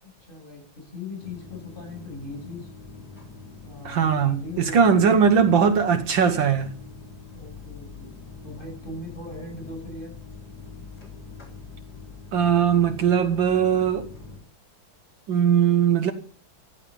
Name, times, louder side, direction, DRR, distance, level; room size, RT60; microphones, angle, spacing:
voice 1, 0.0-2.7 3.6-5.1 7.3-8.1 8.4-10.1, left 2 dB, 25° left, 8.3 m, -39 dB
sound 1, 1.2-14.4, left 4 dB, 50° left, 4.6 m, -43 dB
voice 2, 3.9-6.7 12.3-14.1 15.3-16.1, right 7 dB, 70° right, 1.8 m, -20 dB
15.0 x 12.0 x 5.6 m
omnidirectional pair, 2.2 m